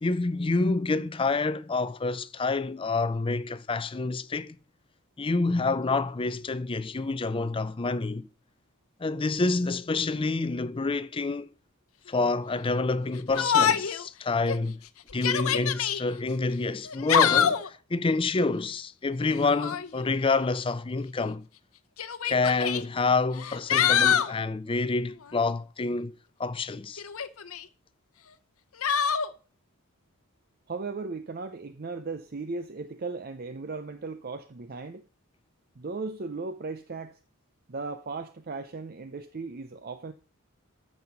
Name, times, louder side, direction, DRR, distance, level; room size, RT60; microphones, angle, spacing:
voice 1, 0.0-4.6 5.2-8.3 9.0-11.5 12.1-14.8 15.1-21.5 22.2-26.1 26.4-27.0, left 3 dB, 25° left, 0.4 m, -28 dB
Yell, 13.4-14.0 14.5-14.6 15.1-16.0 16.9-17.7 19.4-19.9 21.0-21.1 22.0-22.8 23.4-24.3 27.0-27.6 28.8-29.3, left 8 dB, 70° left, 0.8 m, -24 dB
voice 2, 30.7-35.0 35.8-37.2 37.7-40.1, right 3 dB, 45° right, 0.6 m, -36 dB
13.5 x 5.5 x 5.7 m
head